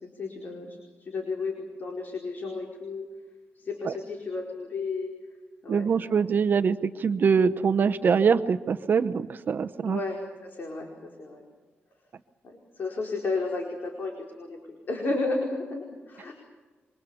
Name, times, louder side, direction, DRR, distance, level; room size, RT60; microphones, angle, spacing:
voice 1, 0.1-3.0 3.5-5.1 5.6-6.2 9.8-10.9 11.2-11.4 12.4-16.3, left 3 dB, 45° left, 1 dB, 4.6 m, -33 dB
voice 2, 5.7-10.0, right 6 dB, 50° right, 11 dB, 0.9 m, -24 dB
28.0 x 24.5 x 7.0 m, 1.3 s
wide cardioid pair, 145°, 4 cm